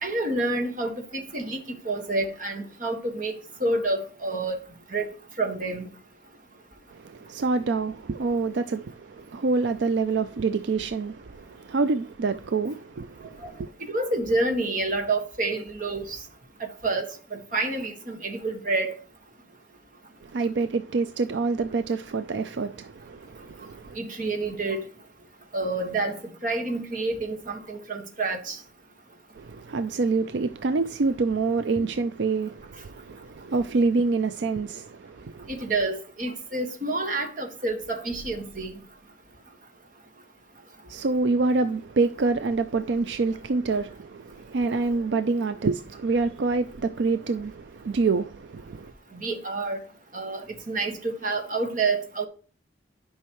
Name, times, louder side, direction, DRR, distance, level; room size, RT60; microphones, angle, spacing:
voice 1, 0.0-3.3 3.6-4.6 4.9-5.1 5.4-5.8 13.4-13.5 13.9-16.2 16.6-17.1 17.3-18.9 23.9-24.8 25.5-26.1 26.4-28.6 35.5-38.7 49.1-49.8 50.1-50.4 50.7-52.2, right 2 dB, 45° right, 1.6 m, -28 dB
voice 2, 6.9-13.7 20.2-24.0 29.4-35.6 40.9-48.9, right 4 dB, 75° right, 0.4 m, -27 dB
11.0 x 5.5 x 3.1 m
head